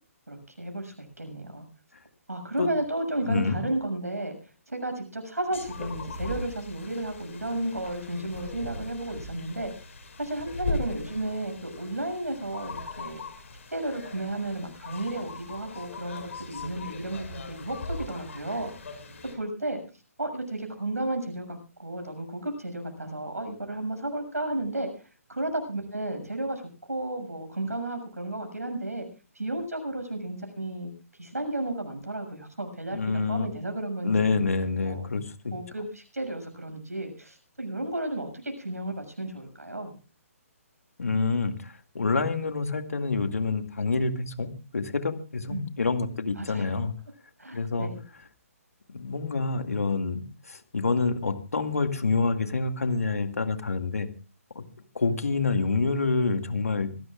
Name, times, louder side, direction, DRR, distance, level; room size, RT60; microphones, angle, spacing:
voice 1, 0.3-1.6 2.3-4.3 4.7-9.7 10.2-13.2 13.7-18.7 19.3-19.8 20.2-24.9 25.3-26.6 26.9-29.1 29.3-30.9 31.2-34.4 34.8-35.1 35.5-39.9 45.5-45.7 46.4-46.8 47.4-48.0, right 1 dB, 85° right, 5 dB, 6.9 m, -33 dB
voice 2, 3.3-3.6 32.9-33.5 34.0-35.5 41.0-44.5 44.7-46.9 47.5-47.9 48.9-54.1 54.6-54.7 54.9-56.9, left 4 dB, 75° left, 8 dB, 2.1 m, -27 dB
sound 1, 5.5-19.4, left 2 dB, 60° left, 6.3 m, -39 dB
25.0 x 17.0 x 2.5 m, 0.34 s
figure-of-eight pair, 140°, 8 cm